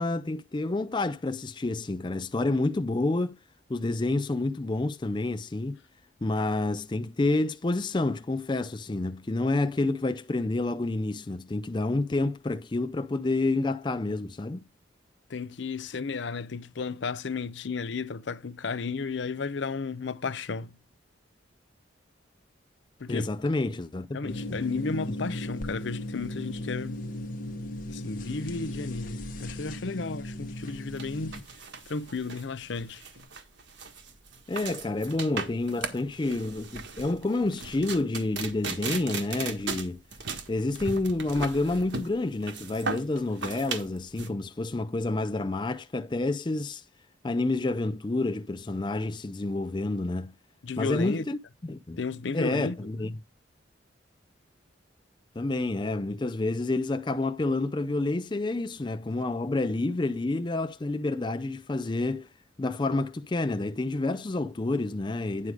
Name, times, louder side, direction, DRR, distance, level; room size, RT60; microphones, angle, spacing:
voice 1, 0.0-3.4 3.7-5.8 6.2-14.6 23.1-24.4 34.5-40.0 40.5-46.8 47.2-50.3 50.8-52.0 52.3-53.2 55.4-62.3 62.6-65.5, left 2 dB, 25° left, 0.4 m, -29 dB
voice 2, 15.3-20.8 23.0-23.3 24.1-27.0 27.9-31.4 31.9-33.0 50.6-51.2 52.0-52.7, left 4 dB, 70° left, 0.6 m, -33 dB
sound 1, 24.3-31.4, left 1 dB, 45° left, 1.0 m, -36 dB
sound 2, 30.6-44.3, right 4 dB, 65° right, 1.5 m, -37 dB
9.8 x 5.0 x 4.8 m
head